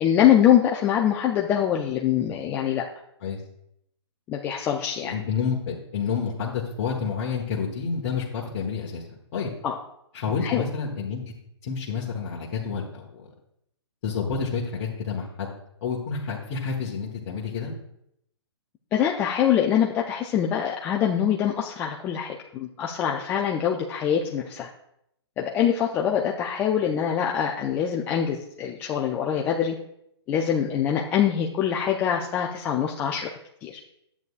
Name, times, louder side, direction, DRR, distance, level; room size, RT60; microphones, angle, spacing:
voice 1, 0.0-2.8 4.3-5.1 9.6-9.8 10.4-10.6 18.9-24.7 25.4-29.8 30.3-33.3 33.6-33.8, left 9 dB, 10° left, 0 dB, 0.3 m, -24 dB
voice 2, 5.0-9.5 10.1-11.2 11.6-13.3 14.0-15.5 15.8-17.7, left 6 dB, 40° left, -5 dB, 1.2 m, -29 dB
10.5 x 8.2 x 2.4 m, 0.77 s
hypercardioid pair, 145°, 15 cm